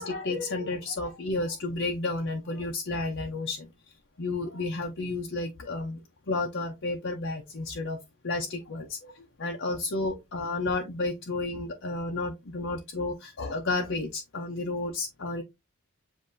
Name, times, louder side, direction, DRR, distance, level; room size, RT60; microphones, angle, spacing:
voice 1, 0.0-3.7 4.2-15.4, left 2 dB, 55° left, 0.7 m, -32 dB
7.5 x 2.7 x 2.6 m
head